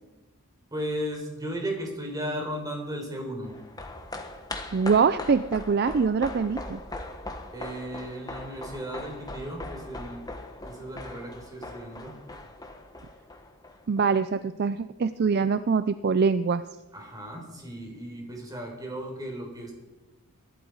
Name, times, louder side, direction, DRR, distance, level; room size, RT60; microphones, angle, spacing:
voice 1, 0.7-3.5 7.5-10.2 10.6-12.2 16.9-19.7, equal, 15° right, 1 dB, 4.1 m, -35 dB
sound 1, 3.4-14.0 14.3-14.4, left 2 dB, 15° left, 1.4 m, -40 dB
voice 2, 4.7-6.8 13.9-16.6, right 5 dB, 45° right, 13 dB, 0.4 m, -24 dB
22.5 x 12.0 x 4.8 m, 1.1 s
head